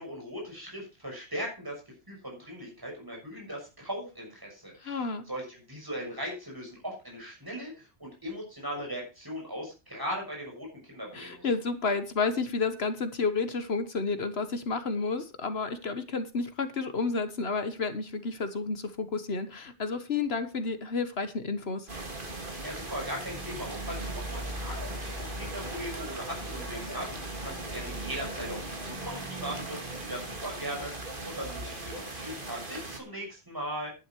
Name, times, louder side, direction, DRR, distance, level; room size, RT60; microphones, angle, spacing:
voice 1, 0.0-1.7 2.1-11.5 22.6-33.9, equal, 20° right, -1 dB, 6.3 m, -39 dB
voice 2, 4.8-5.2 11.1-21.9, left 4 dB, 65° left, 10 dB, 1.5 m, -31 dB
sound 1, 21.9-33.0, right 2 dB, 50° right, 2.6 m, -38 dB
11.0 x 10.5 x 4.6 m, 0.30 s
omnidirectional pair, 1.2 m